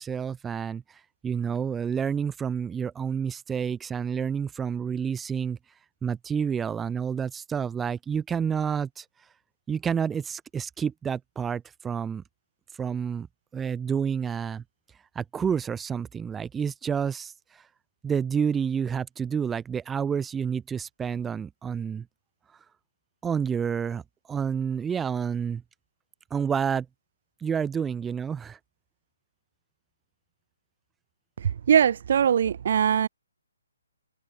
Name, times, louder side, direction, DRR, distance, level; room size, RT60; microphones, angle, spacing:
voice 1, 0.0-5.6 6.0-9.3 9.7-12.2 12.7-13.3 13.5-14.6 15.2-17.7 18.0-22.1 22.5-22.6 23.2-24.0 24.3-25.6 26.3-26.9 27.4-28.6, right 7 dB, 10° right, 2.1 m, -29 dB
voice 2, 31.4-33.1, right 8 dB, 55° right, 1.3 m, -21 dB
hypercardioid pair, 150°, 0 cm